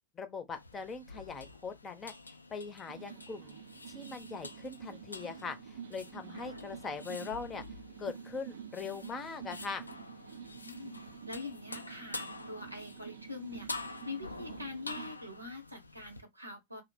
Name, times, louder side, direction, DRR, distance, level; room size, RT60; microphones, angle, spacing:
voice 1, 0.1-2.1 2.5-3.6 3.9-7.6 8.0-9.9, left 5 dB, 20° left, 0.7 m, -41 dB
sound 1, 0.5-16.2, left 3 dB, 80° left, 0.4 m, -47 dB
sound 2, 2.9-15.1, right 8 dB, 60° right, 0.4 m, -49 dB
voice 2, 10.5-11.0 11.3-16.8, left 3 dB, 85° right, 0.9 m, -44 dB
2.8 x 2.1 x 4.1 m
figure-of-eight pair, 90°, 0 cm